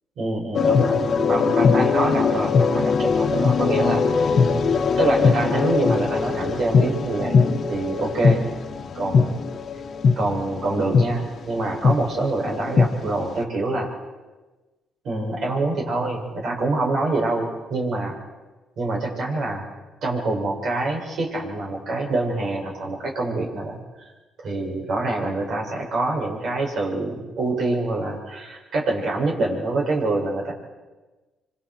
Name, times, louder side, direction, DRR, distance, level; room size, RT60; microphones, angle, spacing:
voice 1, 0.2-4.4 5.0-7.4 7.7-8.4 8.9-9.5 10.2-13.9 15.0-18.2 18.8-19.7 20.0-23.8 24.4-30.5, right 2 dB, 65° right, -1 dB, 6.6 m, -25 dB
sound 1, 0.5-11.3 11.8-12.0 12.4-12.9, left 5 dB, 55° left, 1.5 m, -20 dB
26.0 x 25.5 x 4.7 m, 1.2 s
cardioid pair, 90°, 0 cm